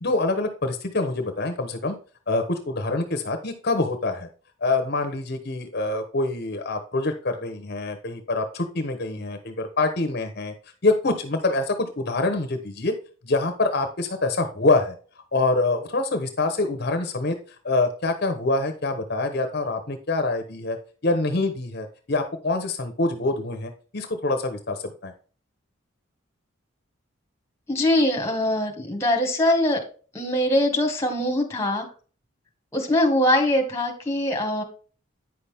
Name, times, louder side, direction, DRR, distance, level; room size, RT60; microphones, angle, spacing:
voice 1, 0.0-1.9 2.3-4.3 4.6-10.5 10.8-12.9 13.2-14.9 15.3-17.4 17.6-20.8 21.0-25.1, left 2 dB, 50° left, 6 dB, 1.0 m, -25 dB
voice 2, 27.7-29.8 30.1-31.9 32.7-34.6, left 1 dB, 15° left, 2 dB, 1.7 m, -22 dB
9.3 x 5.8 x 3.5 m, 0.39 s
head